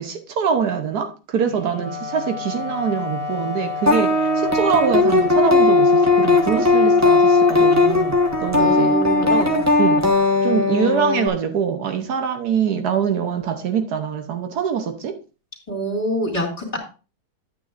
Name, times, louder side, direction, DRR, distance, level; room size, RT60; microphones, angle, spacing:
voice 1, 0.0-9.0 9.2-10.1 10.4-15.2, right 7 dB, 75° right, 6 dB, 1.4 m, -24 dB
Wind instrument woodwind instrument, 1.4-10.7, left 4 dB, 45° right, 1.4 m, -30 dB
sound 1, 3.9-11.3, left 3 dB, 10° right, 0.9 m, -17 dB
voice 2, 8.6-9.3 15.7-16.8, right 1 dB, 25° left, -2 dB, 2.7 m, -25 dB
10.0 x 9.0 x 2.5 m, 0.33 s
omnidirectional pair, 1.7 m